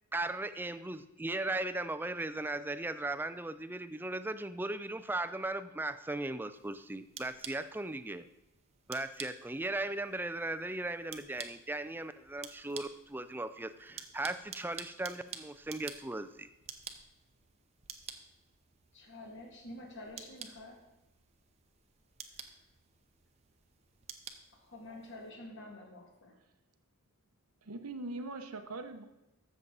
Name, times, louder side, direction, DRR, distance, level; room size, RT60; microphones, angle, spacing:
voice 1, 0.1-8.2 8.9-16.5, right 2 dB, 10° right, 11 dB, 0.4 m, -37 dB
sound 1, 6.5-25.3, right 7 dB, 30° right, 0.7 m, -51 dB
voice 2, 18.9-20.8 22.4-22.5 24.5-26.3, left 1 dB, 55° left, 0 dB, 2.2 m, -48 dB
voice 3, 27.6-29.0, right 2 dB, 90° right, 7 dB, 0.9 m, -41 dB
13.0 x 7.3 x 4.0 m, 0.93 s
head